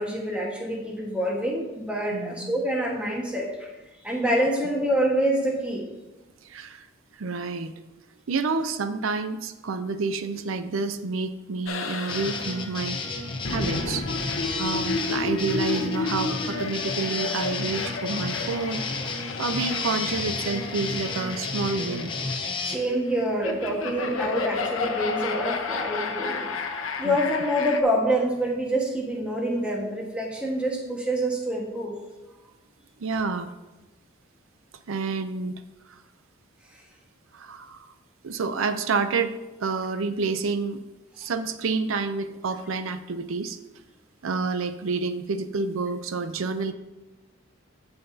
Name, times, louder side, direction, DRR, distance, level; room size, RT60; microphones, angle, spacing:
voice 1, 0.0-3.7 4.0-5.9 22.6-26.5 27.0-32.0 33.1-33.2, equal, 5° right, -2 dB, 1.4 m, -26 dB
voice 2, 2.1-2.6 6.4-6.9 7.2-7.7 8.3-13.0 13.5-14.1 14.6-18.8 19.4-22.1 27.0-27.2 33.0-33.5 34.9-35.5 35.9-36.0 37.3-37.9 38.2-40.8 41.2-43.6 44.2-46.7, right 4 dB, 75° right, 10 dB, 0.5 m, -29 dB
sound 1, 11.7-27.8, left 4 dB, 75° left, 0.9 m, -32 dB
sound 2, 12.1-22.8, left 3 dB, 25° left, 0.8 m, -32 dB
16.5 x 5.7 x 2.7 m, 1.1 s
head